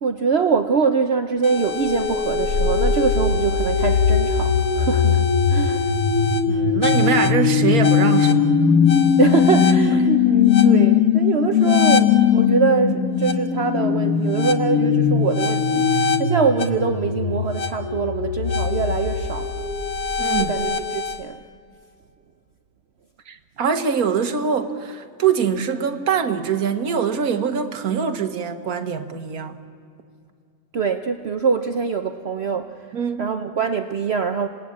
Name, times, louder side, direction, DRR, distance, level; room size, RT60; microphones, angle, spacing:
voice 1, 0.0-5.9 7.0-7.2 9.2-19.5 20.4-21.4 30.7-32.7 33.2-34.5, right 5 dB, 55° right, 0.9 m, -23 dB
sound 1, 1.4-21.2, left 6 dB, 90° left, 1.6 m, -19 dB
voice 2, 6.5-8.4 20.2-20.6 23.3-29.6 32.9-33.3, right 7 dB, 80° right, 1.7 m, -23 dB
27.0 x 18.5 x 8.6 m
omnidirectional pair, 1.5 m